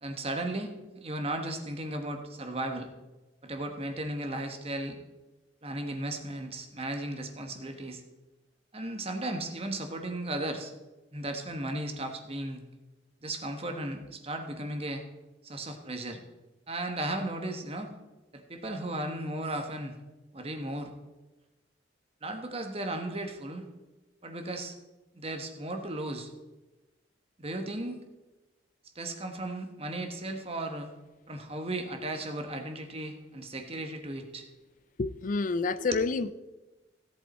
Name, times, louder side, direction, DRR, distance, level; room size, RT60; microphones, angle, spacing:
voice 1, 0.0-0.7 0.9-2.9 3.4-5.0 5.6-8.0 8.7-10.7 11.1-12.6 13.2-15.0 15.4-16.2 16.7-17.9 18.3-19.9 20.3-20.9 22.2-23.6 24.2-24.7 25.1-26.3 27.4-28.0 28.9-30.9 31.3-34.4 35.8-36.0, right 1 dB, 35° right, 1.3 m, -35 dB
voice 2, 35.0-36.3, left 4 dB, 45° left, 0.4 m, -28 dB
16.5 x 8.4 x 4.3 m
head